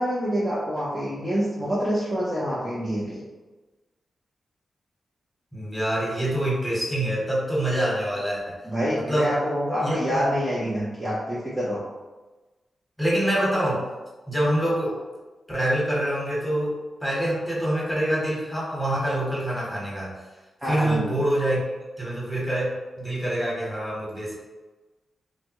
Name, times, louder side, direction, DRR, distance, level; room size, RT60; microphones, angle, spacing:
voice 1, 0.0-3.2 8.6-11.8 14.7-14.8 20.6-21.0, equal, 15° right, -8 dB, 0.7 m, -26 dB
voice 2, 5.5-8.6 9.1-9.4 9.8-10.2 13.0-13.8 14.3-15.0 15.5-20.1 20.6-21.6 22.0-24.4, right 1 dB, 5° left, -6 dB, 1.2 m, -25 dB
3.2 x 2.2 x 2.9 m, 1.2 s
cardioid pair, 95°, 0 cm